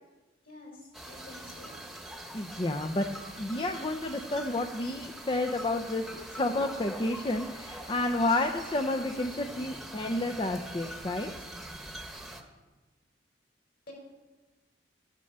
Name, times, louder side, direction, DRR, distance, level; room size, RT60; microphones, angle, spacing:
voice 1, 0.4-1.8 13.9-14.0, left 2 dB, 55° left, -1 dB, 4.7 m, -49 dB
sound 1, 0.9-12.4, right 1 dB, ahead, 1.2 m, -43 dB
voice 2, 2.3-3.1 3.4-11.5, left 2 dB, 25° left, 4 dB, 0.6 m, -30 dB
13.0 x 8.9 x 6.6 m, 1.2 s
head